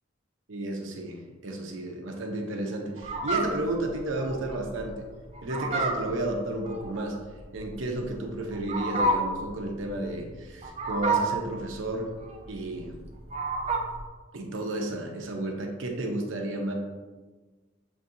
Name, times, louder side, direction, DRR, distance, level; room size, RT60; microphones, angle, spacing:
voice 1, 0.5-5.0 5.4-7.2 7.5-12.1 12.5-12.9 14.3-16.7, right 1 dB, 90° right, 1 dB, 0.8 m, -32 dB
Fowl, 3.0-14.1, right 2 dB, 35° right, 0.4 m, -31 dB
7.0 x 2.7 x 2.6 m, 1.3 s
head